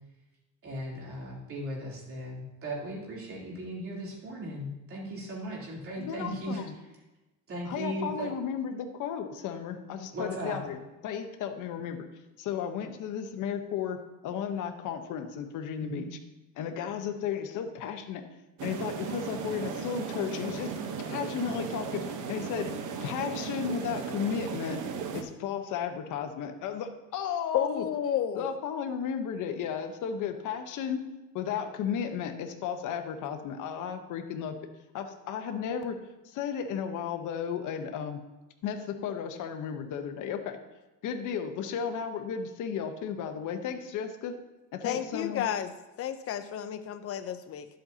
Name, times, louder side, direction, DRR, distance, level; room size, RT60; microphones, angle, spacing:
voice 1, 0.6-6.6 7.5-8.3 10.1-10.6 15.8-16.0, equal, 40° right, -4 dB, 3.3 m, -37 dB
voice 2, 6.0-6.7 7.6-10.8 11.0-12.0 12.4-14.0 14.2-16.0 16.6-18.2 18.6-20.7 21.0-22.7 23.0-24.8 25.1-27.8 28.3-31.0 31.3-34.6 34.9-36.0 36.2-38.2 38.6-40.6 41.0-44.3 44.7-45.4, left 7 dB, 60° left, 6 dB, 1.1 m, -34 dB
sound 1, 18.6-25.2, right 6 dB, 60° right, 1.1 m, -36 dB
voice 3, 27.5-28.5 44.8-45.7 46.0-47.7, left 10 dB, 40° left, 10 dB, 0.7 m, -31 dB
11.5 x 7.7 x 2.8 m, 1.0 s
cardioid pair, 120°, 34 cm